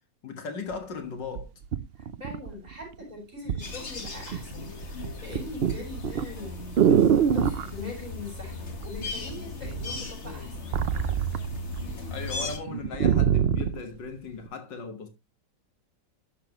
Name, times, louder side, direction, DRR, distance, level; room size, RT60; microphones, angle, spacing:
voice 1, 0.2-1.5 12.1-15.1, left 4 dB, 80° left, 2.2 m, -37 dB
sound 1, 0.7-0.8 1.4-2.8 3.5-3.7 4.1-4.5 4.8-7.7 8.8-9.3 9.6-11.9 12.3-12.4 12.7-13.8 14.5-14.6, right 8 dB, 75° right, 0.5 m, -24 dB
voice 2, 2.0-10.7, left 2 dB, 20° right, 6.9 m, -42 dB
sound 2, 3.6-12.6, left 2 dB, 40° left, 1.8 m, -37 dB
11.0 x 7.5 x 3.0 m
omnidirectional pair, 1.9 m